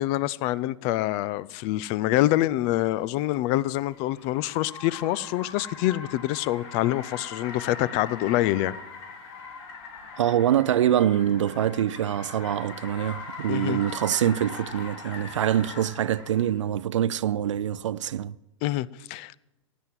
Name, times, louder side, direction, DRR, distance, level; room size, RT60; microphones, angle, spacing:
voice 1, 0.0-8.8 13.5-13.8 18.6-19.3, left 15 dB, 35° left, 0.4 m, -26 dB
Car, 2.6-16.6, left 4 dB, 50° left, 3.5 m, -41 dB
voice 2, 10.2-18.4, right 10 dB, 65° right, 0.5 m, -25 dB
16.5 x 8.1 x 7.5 m
figure-of-eight pair, 105°, 17 cm